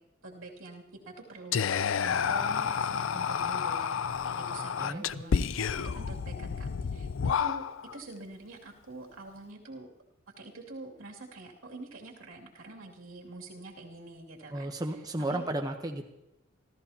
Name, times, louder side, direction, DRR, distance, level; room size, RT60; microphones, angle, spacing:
voice 1, 0.2-7.7 7.9-9.9 10.4-14.7 15.3-15.5, right 2 dB, 90° right, -1 dB, 2.7 m, -46 dB
Whispering, 1.5-8.0, left 6 dB, 70° left, 0.5 m, -30 dB
voice 2, 14.5-16.0, right 1 dB, 20° right, 3 dB, 0.9 m, -33 dB
28.5 x 14.0 x 2.9 m, 0.90 s
head